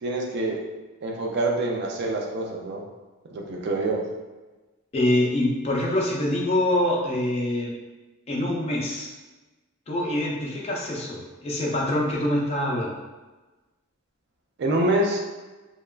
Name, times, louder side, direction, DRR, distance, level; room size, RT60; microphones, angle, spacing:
voice 1, 0.0-0.6 1.0-2.8 3.3-4.0 14.6-15.2, right 2 dB, 55° right, 0 dB, 0.4 m, -26 dB
voice 2, 4.9-7.7 8.3-9.1 9.9-12.9, left 1 dB, 30° left, -3 dB, 0.4 m, -25 dB
2.8 x 2.2 x 2.3 m, 1.2 s
head